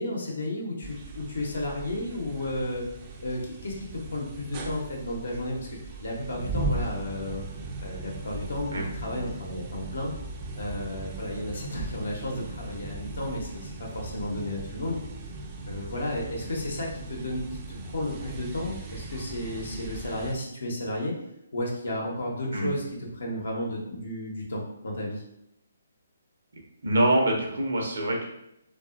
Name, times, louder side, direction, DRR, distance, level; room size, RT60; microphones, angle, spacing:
voice 1, 0.0-2.8 3.2-5.7 6.0-7.4 7.8-8.7 8.9-10.1 10.5-15.0 15.7-21.1 21.5-25.2, left 1 dB, 75° left, -2 dB, 0.7 m, -33 dB
sound 1, 0.8-20.4, right 3 dB, 30° right, 0.4 m, -38 dB
voice 2, 26.8-28.2, right 1 dB, 75° right, 0 dB, 0.7 m, -24 dB
2.7 x 2.3 x 2.4 m, 0.80 s
hypercardioid pair, 145°, 0 cm